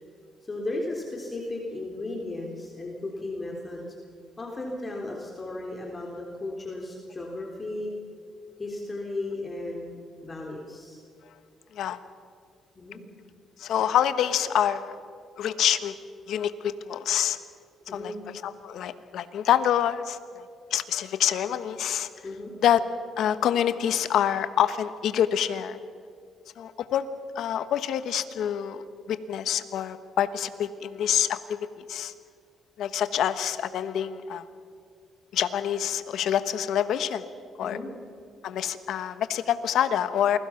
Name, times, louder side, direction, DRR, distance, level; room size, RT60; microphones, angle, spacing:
voice 1, 0.5-3.8 4.4-7.9 8.6-11.0 12.8-13.0 17.9-18.2 22.2-22.5 37.6-37.9, left 2 dB, 30° left, -1 dB, 3.6 m, -35 dB
voice 2, 13.6-14.9 15.4-15.9 16.3-17.4 17.9-18.1 18.4-20.4 20.7-22.1 22.6-22.8 23.2-25.8 26.6-27.0 27.3-32.1 32.8-34.4 35.3-37.2 37.6-37.8 38.4-40.4, left 10 dB, 75° left, 12 dB, 1.2 m, -26 dB
28.5 x 21.0 x 5.9 m, 2.2 s
cardioid pair, 90°, 0 cm